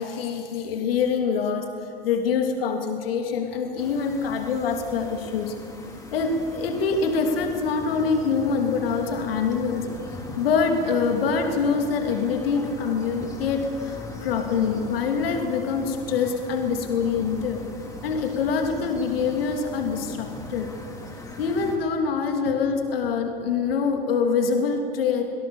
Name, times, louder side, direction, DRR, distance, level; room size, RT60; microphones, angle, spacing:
voice 1, 0.0-1.7 2.0-5.5 6.1-9.9 10.4-17.6 18.0-20.7 21.4-25.2, left 5 dB, 75° left, 3 dB, 2.9 m, -25 dB
sound 1, 3.8-21.8, left 2 dB, 10° left, 4.5 m, -39 dB
25.0 x 18.0 x 7.2 m, 2.4 s
hypercardioid pair, 100°, 29 cm